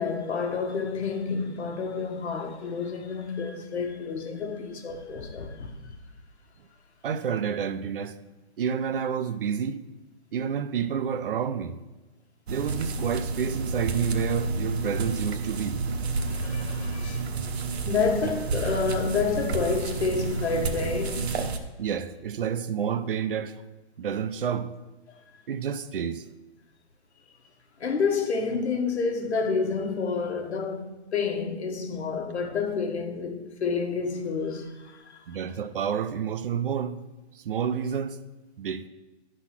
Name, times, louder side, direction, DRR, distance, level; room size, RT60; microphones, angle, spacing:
voice 1, 0.0-5.7 16.2-17.2 17.9-21.3 27.8-35.2, left 5 dB, 80° left, 1.4 m, -29 dB
voice 2, 7.0-8.2 8.6-9.8 10.3-11.7 12.5-15.8 21.8-23.6 24.0-24.7 25.5-26.2 35.3-37.0 37.3-38.2 38.6-38.9, right 7 dB, 55° right, 0.6 m, -29 dB
sound 1, 12.5-21.6, right 3 dB, 70° right, 1.1 m, -30 dB
11.0 x 4.1 x 5.9 m
hypercardioid pair, 170°, 32 cm